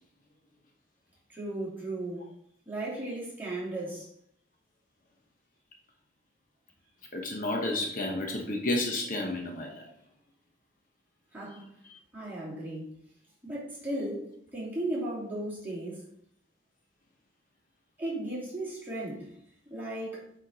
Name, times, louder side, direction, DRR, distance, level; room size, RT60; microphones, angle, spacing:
voice 1, 1.3-2.2 2.7-4.1 11.3-11.7 12.1-12.9 13.4-16.0 18.0-19.3 19.7-20.3, right 1 dB, 10° right, -8 dB, 2.9 m, -35 dB
voice 2, 7.1-9.9 11.8-12.0, left 2 dB, 45° left, 2 dB, 1.0 m, -31 dB
8.7 x 4.4 x 4.1 m, 0.68 s
head